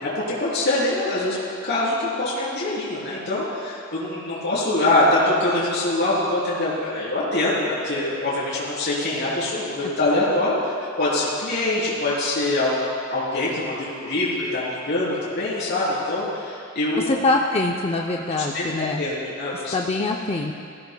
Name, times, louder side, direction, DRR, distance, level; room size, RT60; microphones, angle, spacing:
voice 1, 0.0-12.7 13.1-17.2 18.3-19.7, left 2 dB, 55° left, -7 dB, 3.4 m, -24 dB
voice 2, 17.1-19.0 19.5-20.5, left 2 dB, 30° left, 0 dB, 0.5 m, -24 dB
19.0 x 15.5 x 2.2 m, 2.3 s
head